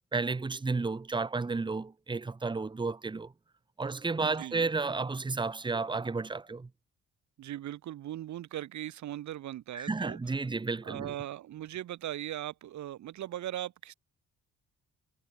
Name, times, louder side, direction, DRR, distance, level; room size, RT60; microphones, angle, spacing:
voice 1, 0.1-3.3 3.8-6.7 9.7-11.1, right 3 dB, 15° right, 0.9 m, -32 dB
voice 2, 4.2-4.6 7.4-10.2 10.8-13.9, right 12 dB, 70° right, 1.3 m, -39 dB
cardioid pair, 90°, 30 cm